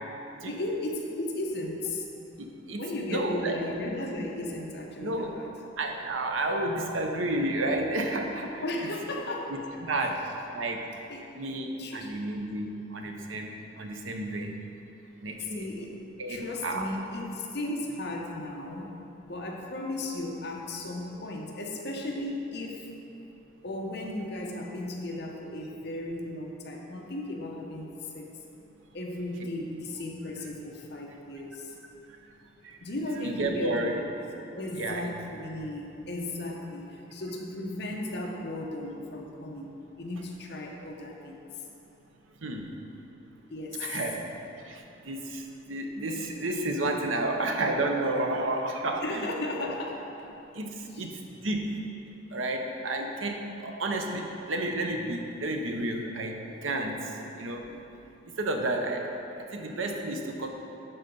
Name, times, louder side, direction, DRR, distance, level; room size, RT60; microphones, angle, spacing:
voice 1, 0.5-2.1 2.8-5.5 8.6-9.6 11.1-12.1 15.4-15.9 16.3-18.9 19.2-22.9 23.6-28.3 28.9-31.8 32.8-34.0 34.5-41.5 43.5-43.9 49.0-50.0 50.8-51.0, left 1 dB, 55° left, 0 dB, 1.0 m, -35 dB
voice 2, 2.4-2.8 3.1-3.6 5.0-5.3 5.8-8.6 9.5-10.3 10.5-10.9 11.3-14.6 15.2-16.9 32.2-32.3 32.6-32.8 33.2-34.0 34.7-35.1 42.4-42.8 43.8-49.7 50.5-51.9 52.3-57.7 58.2-60.5, right 2 dB, 85° right, 3 dB, 0.9 m, -31 dB
11.5 x 4.0 x 5.3 m, 2.9 s
head